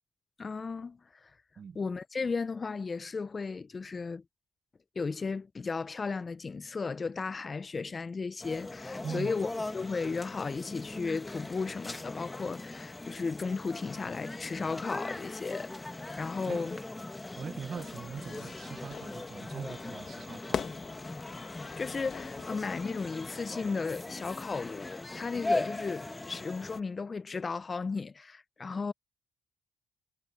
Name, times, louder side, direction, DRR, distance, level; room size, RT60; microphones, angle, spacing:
voice 1, 0.4-1.0 1.8-4.2 5.0-15.7 16.2-16.8 21.8-28.9, left 4 dB, 35° left, 0.4 m, -35 dB
voice 2, 1.6-1.9 9.0-9.3 16.4-16.6 17.4-20.7, right 6 dB, 50° right, 0.8 m, -41 dB
sound 1, 8.4-26.8, left 2 dB, 15° left, 1.4 m, -40 dB
Fire / Fireworks, 17.8-23.3, left 7 dB, 60° left, 1.5 m, -43 dB
cardioid pair, 90°, 0 cm